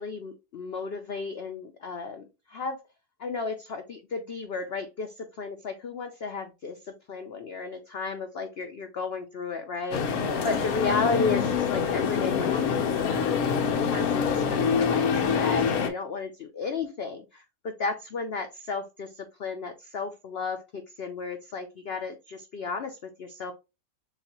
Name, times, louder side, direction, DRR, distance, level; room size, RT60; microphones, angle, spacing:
voice 1, 0.0-2.8 3.2-23.5, left 4 dB, 85° left, 6 dB, 0.5 m, -34 dB
sound 1, 9.9-15.9, left 6 dB, 65° left, 1.2 m, -25 dB
6.9 x 2.4 x 2.9 m, 0.27 s
omnidirectional pair, 1.7 m